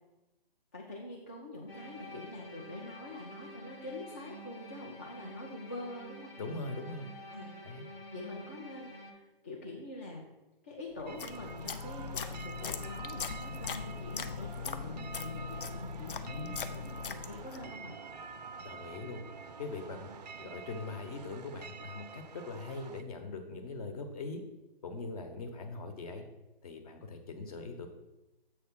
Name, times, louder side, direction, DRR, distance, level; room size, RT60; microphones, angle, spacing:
voice 1, 0.7-6.3 7.3-7.7 8.1-10.3 10.6-17.9 20.1-20.3, left 2 dB, 15° left, -3 dB, 0.4 m, -45 dB
sound 1, 1.7-9.1, equal, 90° left, 1.5 m, -49 dB
voice 2, 6.4-7.1 7.6-7.9 16.2-16.6 18.6-19.2 19.6-20.1 20.4-24.4 24.8-26.2 26.6-27.9, left 3 dB, 40° left, 6 dB, 1.0 m, -41 dB
sound 2, 11.0-17.7, left 6 dB, 65° left, 0.6 m, -40 dB
sound 3, 11.1-23.0, right 5 dB, 45° right, 0.5 m, -47 dB
7.4 x 3.2 x 6.1 m, 1.0 s
figure-of-eight pair, 145°, 30 cm